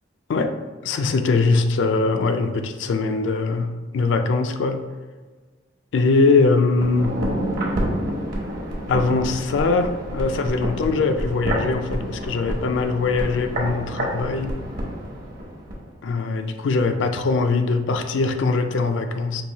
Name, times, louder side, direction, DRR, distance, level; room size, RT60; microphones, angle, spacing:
voice 1, 0.8-4.9 5.9-7.2 8.9-14.6 16.0-19.4, left 3 dB, 75° left, 7 dB, 0.4 m, -22 dB
sound 1, 6.7-15.8 16.1-16.2, right 1 dB, 55° right, 0.8 m, -28 dB
4.7 x 2.6 x 2.8 m, 1.4 s
head